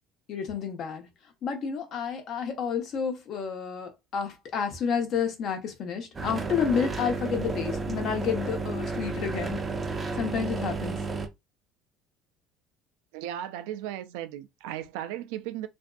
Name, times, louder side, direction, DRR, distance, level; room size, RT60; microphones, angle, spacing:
voice 1, 0.3-1.1 1.4-9.6 10.1-11.0, left 7 dB, 55° left, 0.8 m, -30 dB
sound 1, 6.1-11.3, right 4 dB, 20° right, 0.5 m, -32 dB
voice 2, 13.1-15.7, right 12 dB, 90° right, 0.3 m, -36 dB
2.6 x 2.4 x 2.3 m
cardioid pair, 120°, 0 cm